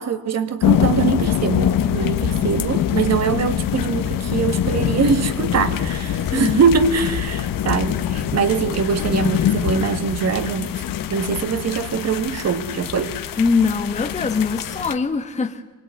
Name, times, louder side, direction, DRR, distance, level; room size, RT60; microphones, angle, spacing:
voice 1, 0.0-10.8 11.1-13.2, right 6 dB, 45° right, 1.8 m, -22 dB
sound 1, 0.6-14.9, left 9 dB, 60° left, 1.5 m, -24 dB
voice 2, 6.3-6.6 13.4-15.6, left 4 dB, 20° left, 1.3 m, -22 dB
25.0 x 22.0 x 9.5 m
cardioid pair, 145°, 37 cm